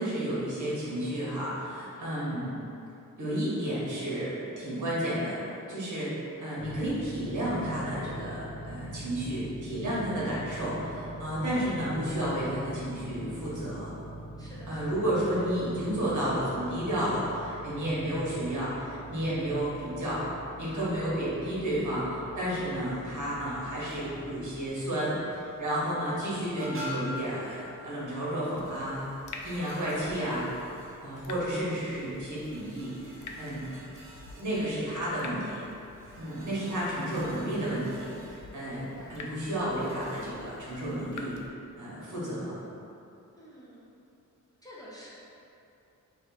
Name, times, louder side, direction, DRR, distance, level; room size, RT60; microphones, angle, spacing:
voice 1, 0.0-2.6 3.2-13.9 14.7-20.2 20.6-29.0 29.4-30.5 31.0-32.9 33.4-33.7 34.3-35.6 36.2-41.3 41.8-42.6, right 1 dB, 65° right, -8 dB, 1.4 m, -32 dB
sound 1, 6.6-24.7, right 1 dB, 35° left, 1.3 m, -43 dB
voice 2, 14.4-15.0 15.3-15.6 20.6-20.9 38.6-39.1 43.3-43.9 44.6-45.1, equal, 10° left, -9 dB, 0.6 m, -50 dB
sound 2, 22.5-40.3, equal, 40° right, 0.8 m, -48 dB
Water tap faucet / Drip, 28.6-41.5, left 3 dB, 70° left, 0.5 m, -48 dB
3.1 x 2.9 x 4.6 m, 2.8 s
wide cardioid pair, 165°, 32 cm